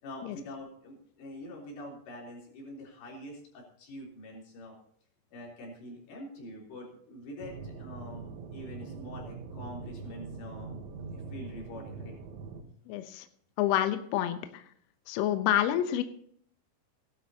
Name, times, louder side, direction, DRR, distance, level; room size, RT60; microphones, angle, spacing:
voice 1, 0.0-4.8 5.3-10.8 11.1-12.2, left 1 dB, 65° left, -2 dB, 5.5 m, -45 dB
sound 1, 7.4-12.6, right 4 dB, 80° right, 3.5 m, -42 dB
voice 2, 12.9-13.3 13.6-14.6 15.1-16.0, left 12 dB, 80° left, 9 dB, 2.3 m, -28 dB
17.5 x 12.0 x 2.8 m, 0.63 s
omnidirectional pair, 5.4 m